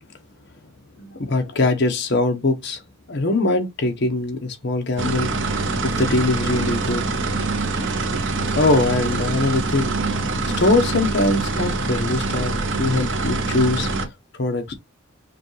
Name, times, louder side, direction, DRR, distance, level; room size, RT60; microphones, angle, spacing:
voice 1, 1.0-2.8 3.1-7.0 8.5-10.0 10.6-12.5 12.8-13.9 14.3-14.7, left 2 dB, 55° left, 0.9 m, -22 dB
sound 1, 5.0-14.1, right 3 dB, 60° right, 0.8 m, -24 dB
5.0 x 2.4 x 3.1 m
head